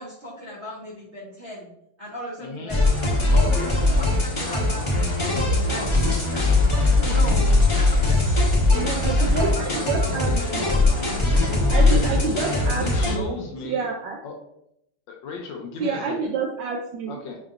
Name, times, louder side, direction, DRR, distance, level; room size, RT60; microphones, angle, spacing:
voice 1, 0.0-1.7 2.0-2.8 3.3-6.7 7.0-7.5 7.7-8.6 8.8-11.0, left 1 dB, 55° right, -6 dB, 0.8 m, -37 dB
voice 2, 2.4-2.8 10.0-10.4 11.0-13.8 14.2-14.3 15.1-16.3 17.1-17.4, left 5 dB, 70° left, 2 dB, 1.2 m, -36 dB
sound 1, 2.7-13.2, left 2 dB, 25° left, 0.6 m, -20 dB
voice 3, 8.7-10.7 11.7-13.3 13.6-14.2 15.8-17.2, right 5 dB, 75° right, 1 dB, 1.1 m, -28 dB
6.8 x 2.8 x 2.4 m, 0.77 s
omnidirectional pair, 2.4 m